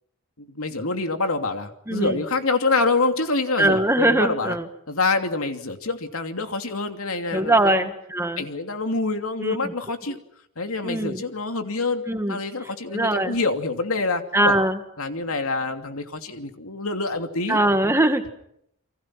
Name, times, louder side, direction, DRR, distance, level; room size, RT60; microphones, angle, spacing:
voice 1, 0.4-4.6 4.9-7.9 8.4-10.2 10.6-12.0 12.3-14.5 15.0-17.6, left 3 dB, 80° left, 6 dB, 2.8 m, -26 dB
voice 2, 1.9-2.2 3.6-4.7 7.3-8.4 9.4-9.6 10.8-11.2 12.1-12.4 12.9-13.4 14.3-14.8 17.5-18.3, right 1 dB, 10° right, 7 dB, 2.0 m, -21 dB
30.0 x 24.5 x 6.1 m, 0.73 s
head